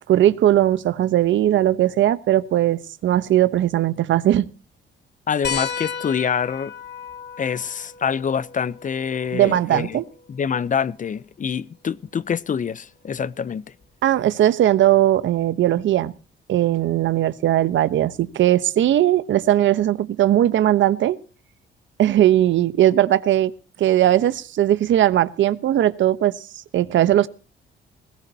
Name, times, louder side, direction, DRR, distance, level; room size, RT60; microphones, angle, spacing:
voice 1, 0.1-4.5 9.3-10.0 14.0-16.1 16.5-21.2 22.0-23.5 23.8-26.3 26.7-27.3, right 12 dB, 70° right, 1.1 m, -18 dB
voice 2, 5.3-6.7 7.4-10.0 10.3-13.6, left 7 dB, 40° left, 0.7 m, -26 dB
sound 1, 5.4-10.5 12.1-12.2 13.8-13.9, left 6 dB, 60° left, 2.7 m, -34 dB
20.5 x 18.0 x 2.9 m
cardioid pair, 90°, 20 cm